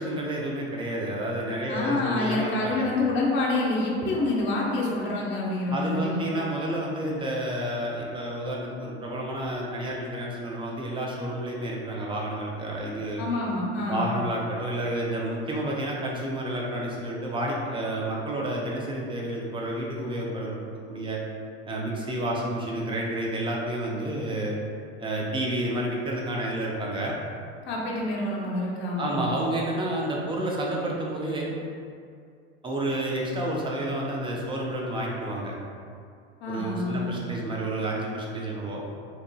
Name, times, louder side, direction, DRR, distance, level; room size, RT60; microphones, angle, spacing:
voice 1, 0.0-2.9 5.7-13.2 13.9-20.6 20.9-21.2 21.7-24.6 25.0-27.2 29.0-31.5 32.6-35.5 36.5-38.8, right 1 dB, 15° right, -2 dB, 0.5 m, -30 dB
voice 2, 1.7-6.1 13.2-14.1 27.7-29.3 36.4-37.2, left 2 dB, 35° left, -4 dB, 0.6 m, -27 dB
2.9 x 2.4 x 2.2 m, 2.3 s
hypercardioid pair, 90°, 32 cm